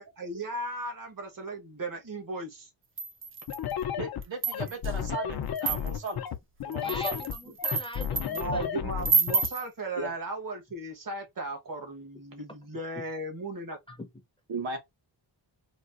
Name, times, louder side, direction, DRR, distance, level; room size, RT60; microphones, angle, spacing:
voice 1, 0.0-2.7 8.2-13.8, right 2 dB, 45° right, 1.1 m, -36 dB
sound 1, 3.0-3.7 4.2-4.9 5.6-6.1 6.7-8.4 9.0-9.6, right 5 dB, 30° right, 0.4 m, -29 dB
sound 2, 3.5-9.5, left 9 dB, 55° left, 0.5 m, -33 dB
voice 2, 4.0-6.2 6.6-7.2 10.0-10.1 14.5-14.8, right 3 dB, 75° right, 1.3 m, -36 dB
voice 3, 6.8-8.7 13.9-14.1, equal, 10° left, 0.6 m, -41 dB
4.0 x 2.4 x 2.4 m
wide cardioid pair, 145°, 45 cm